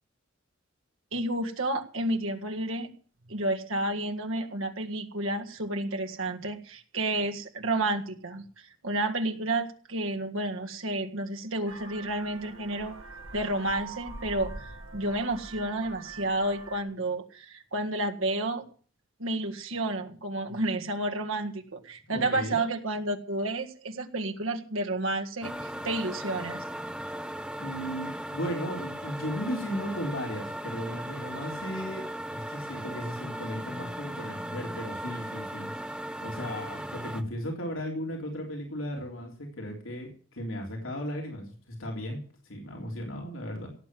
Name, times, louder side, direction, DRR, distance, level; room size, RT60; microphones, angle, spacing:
voice 1, 1.1-2.9 3.3-13.0 13.3-18.6 19.2-26.6, right 2 dB, 85° right, 4 dB, 1.8 m, -31 dB
Vehicle horn car horn honking, 11.7-16.8, right 3 dB, 70° right, 2.2 m, -43 dB
voice 2, 22.1-22.6 27.6-43.7, equal, 80° left, 0 dB, 3.5 m, -36 dB
sound 1, 25.4-37.2, right 1 dB, 5° right, 0.9 m, -37 dB
17.5 x 7.8 x 7.5 m, 0.43 s
head